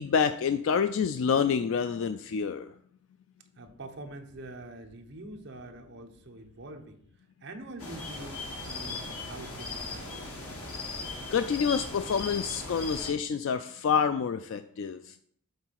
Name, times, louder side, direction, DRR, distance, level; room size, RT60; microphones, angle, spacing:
voice 1, 0.0-2.7 11.3-15.0, left 6 dB, 60° left, 10 dB, 0.3 m, -27 dB
voice 2, 3.6-10.1 14.9-15.0, right 2 dB, 55° right, 4 dB, 0.9 m, -45 dB
sound 1, 7.8-13.1, left 3 dB, 85° left, 1.8 m, -38 dB
7.1 x 3.8 x 5.7 m, 0.62 s
head